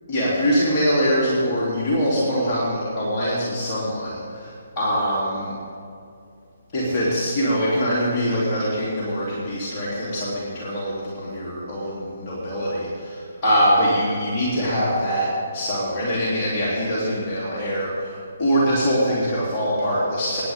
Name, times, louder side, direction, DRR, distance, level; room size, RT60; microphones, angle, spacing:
voice 1, 0.1-5.5 6.7-20.4, equal, 30° left, -8 dB, 3.4 m, -23 dB
24.0 x 10.5 x 3.8 m, 2.5 s
figure-of-eight pair, 135°, 0 cm